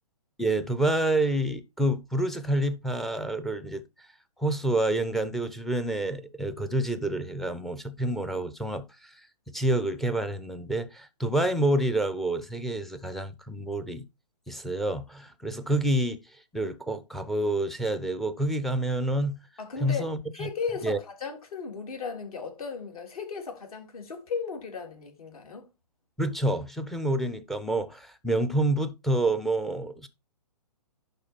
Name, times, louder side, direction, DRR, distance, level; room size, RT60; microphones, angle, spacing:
voice 1, 0.4-3.8 4.4-9.1 9.5-14.0 14.5-16.2 16.5-19.4 19.8-20.5 20.8-21.0 26.2-30.1, right 1 dB, ahead, 0.5 m, -28 dB
voice 2, 19.6-25.7, left 5 dB, 60° left, 3.4 m, -36 dB
11.0 x 4.0 x 4.4 m
hypercardioid pair, 135°, 20 cm